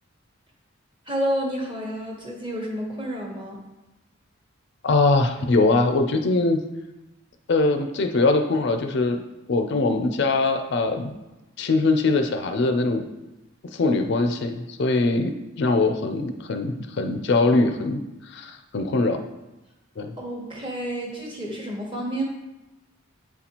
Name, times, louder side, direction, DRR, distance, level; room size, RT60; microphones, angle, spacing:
voice 1, 1.1-3.6 20.2-22.2, right 1 dB, 25° right, -1 dB, 1.0 m, -30 dB
voice 2, 4.8-6.6 7.5-9.2 9.5-11.1 11.6-13.1 13.7-15.3 15.6-18.0 18.3-19.3 20.0-20.1, left 3 dB, 55° left, 6 dB, 0.4 m, -22 dB
8.1 x 4.1 x 2.9 m, 1.0 s
head